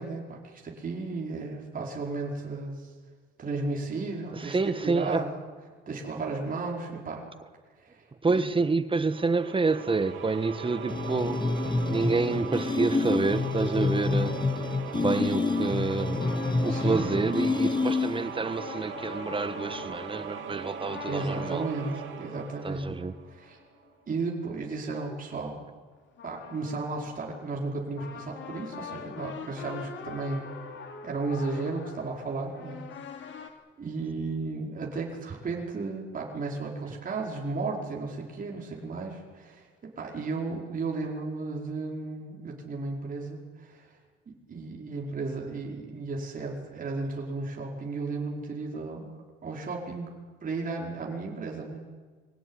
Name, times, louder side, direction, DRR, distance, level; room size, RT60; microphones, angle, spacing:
voice 1, 0.0-2.9 3.4-4.6 4.8-5.4 5.9-7.3 7.8-8.4 16.7-17.3 21.0-22.9 23.3-23.6 24.1-25.6 26.2-30.5 31.0-32.9 33.2-33.5 33.8-43.9 44.3-50.1 50.4-51.8, right 3 dB, 45° right, 4.9 m, -34 dB
voice 2, 4.3-5.2 8.2-14.4 14.9-16.3 16.6-21.7 22.6-23.1, right 3 dB, 25° right, 1.4 m, -28 dB
sound 1, 9.1-23.7, right 7 dB, 75° right, 3.3 m, -40 dB
sound 2, 10.9-18.4, left 3 dB, 20° left, 1.2 m, -28 dB
sound 3, 15.2-23.9 25.9-33.5, left 7 dB, 70° left, 3.0 m, -44 dB
24.0 x 17.0 x 9.8 m
cardioid pair, 90°, 20 cm